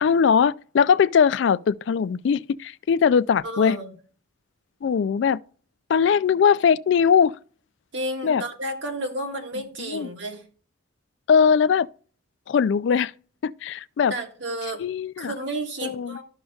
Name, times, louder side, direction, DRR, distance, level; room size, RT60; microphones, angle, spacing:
voice 1, 0.0-3.8 4.8-5.4 5.9-7.3 8.2-8.4 9.8-10.1 11.3-11.9 12.5-13.1 13.4-14.1 14.8-15.3 15.8-16.2, left 6 dB, 60° left, 0.3 m, -20 dB
voice 2, 3.4-3.9 7.9-10.4 14.1-14.8 15.2-16.2, right 1 dB, 60° right, 1.7 m, -31 dB
13.0 x 6.3 x 2.4 m
head